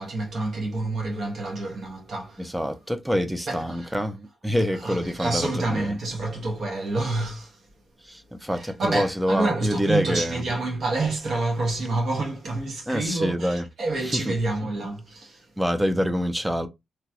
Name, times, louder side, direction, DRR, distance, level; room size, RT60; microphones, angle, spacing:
voice 1, 0.0-2.6 3.5-3.9 4.8-7.6 8.5-15.5, right 2 dB, 65° right, 1.2 m, -28 dB
voice 2, 2.4-6.0 8.0-10.4 12.9-13.6 14.0-14.3 15.6-16.7, equal, 5° right, 0.5 m, -26 dB
3.0 x 2.8 x 2.3 m
cardioid pair, 105°, 0 cm